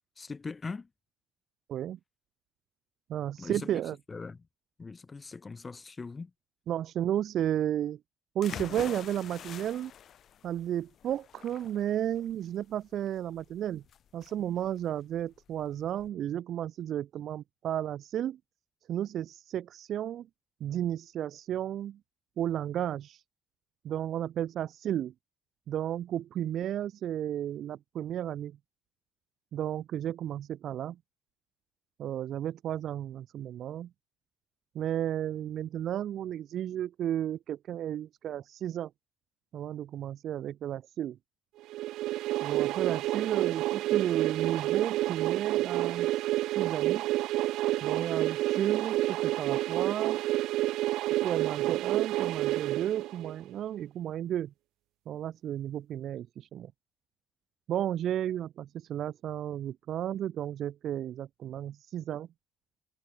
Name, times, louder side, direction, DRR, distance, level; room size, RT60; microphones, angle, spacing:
voice 1, 0.2-0.9 3.4-3.7 4.1-4.5 4.8-6.3, left 4 dB, 20° left, 5.3 m, -41 dB
voice 2, 1.7-2.0 3.1-4.0 6.7-8.0 8.4-9.9 10.4-13.8 14.1-18.4 18.9-20.3 20.6-22.0 22.4-23.2 23.8-25.1 25.7-28.6 29.5-31.0 32.0-33.9 34.7-38.9 39.5-41.2 42.4-46.1 46.6-47.1 47.8-50.2 51.2-54.5 55.1-56.7 57.7-62.3, right 11 dB, 45° right, 0.4 m, -33 dB
sound 1, 8.4-16.1, left 9 dB, 40° left, 2.1 m, -46 dB
sound 2, 41.7-53.5, right 16 dB, 70° right, 1.1 m, -29 dB
cardioid pair, 160°, 0 cm